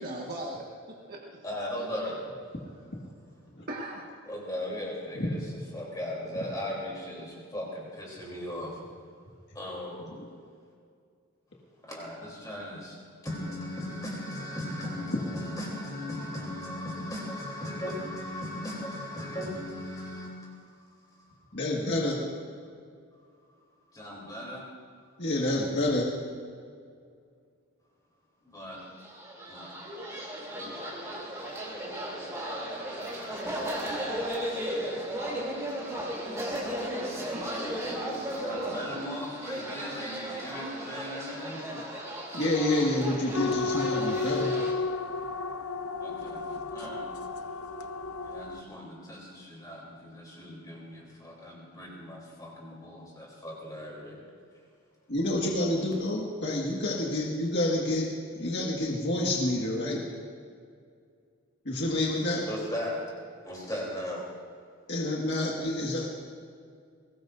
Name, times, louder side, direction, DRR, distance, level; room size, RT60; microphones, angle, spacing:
voice 1, 0.0-1.4 1.8-1.9 3.7-4.1 30.5-31.3, right 1 dB, 40° right, -3 dB, 1.6 m, -40 dB
voice 2, 1.4-2.2 4.2-5.4 5.7-8.8 9.5-10.1 11.9-13.0 13.2-20.5 23.9-24.6 28.4-28.8 29.5-29.7 38.1-41.7 46.0-46.4 46.7-47.1 48.2-54.2 62.4-63.0 63.4-64.3, left 1 dB, 15° left, -3 dB, 3.4 m, -37 dB
voice 3, 5.2-5.5 10.1-10.3 15.1-15.2 21.5-22.2 25.2-26.1 41.7-41.8 42.3-44.5 55.1-58.1 58.3-60.0 61.7-62.5 64.9-66.1, left 1 dB, 50° left, -3 dB, 1.8 m, -28 dB
sound 1, 28.9-44.7, right 1 dB, 15° right, 3.0 m, -35 dB
sound 2, 43.3-48.6, left 3 dB, 75° left, 0.8 m, -32 dB
22.0 x 19.0 x 2.6 m, 2.2 s
head